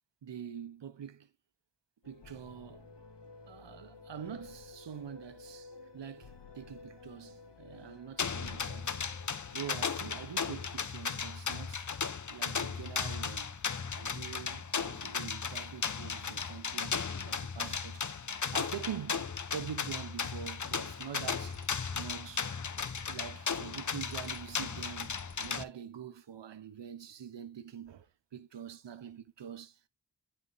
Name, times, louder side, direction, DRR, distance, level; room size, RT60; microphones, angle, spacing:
voice 1, 0.2-1.3 2.0-2.9 3.5-9.0 9.5-11.9 12.3-13.5 13.9-18.0 18.5-19.3 19.5-21.7 22.0-22.5 23.1-28.1 28.3-29.9, right 8 dB, 90° right, 0.8 m, -45 dB
sound 1, 2.0-10.1, left 4 dB, 75° left, 1.4 m, -52 dB
sound 2, 8.2-25.6, left 6 dB, 45° left, 0.8 m, -36 dB
sound 3, 21.3-21.9 22.4-23.3 23.6-25.8, equal, 20° left, 4.5 m, -59 dB
9.5 x 4.4 x 3.9 m
wide cardioid pair, 60°, 42 cm